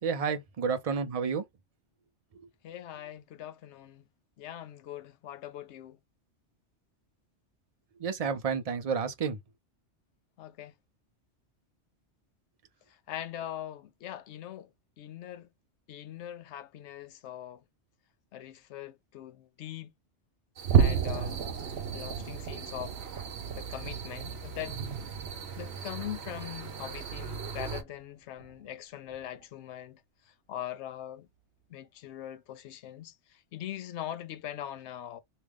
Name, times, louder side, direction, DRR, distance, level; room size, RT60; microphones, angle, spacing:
voice 1, 0.0-1.5 2.3-2.5 7.9-9.4, right 6 dB, 40° right, 0.5 m, -31 dB
voice 2, 2.6-4.1 4.4-6.0 10.4-10.7 12.9-14.7 15.0-15.5 15.9-17.6 18.3-19.9 20.8-21.4 21.9-23.0 23.5-24.8 25.6-31.3 31.7-35.2, left 11 dB, 75° left, 0.9 m, -42 dB
sound 1, 20.6-27.8, right 6 dB, 65° right, 1.1 m, -40 dB
sound 2, 20.6-27.3 27.7-28.0 28.4-28.5 29.1-29.2, right 7 dB, 85° right, 0.9 m, -32 dB
3.2 x 2.4 x 3.4 m
omnidirectional pair, 1.2 m